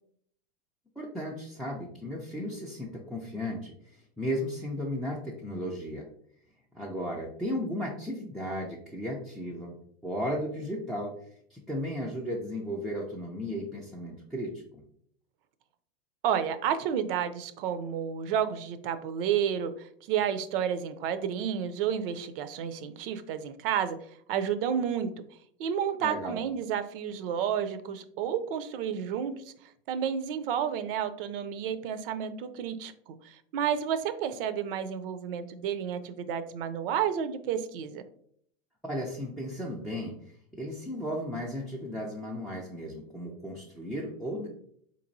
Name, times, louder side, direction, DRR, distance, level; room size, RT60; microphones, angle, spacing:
voice 1, 1.0-6.1 6.7-9.8 10.0-11.1 11.5-14.5 26.0-26.4 38.8-40.2 40.5-44.5, equal, ahead, -4 dB, 0.3 m, -35 dB
voice 2, 16.2-24.0 24.3-25.2 25.6-29.5 29.9-38.0, right 8 dB, 65° right, 11 dB, 0.5 m, -31 dB
4.1 x 3.0 x 2.6 m, 0.66 s
hypercardioid pair, 120°, 31 cm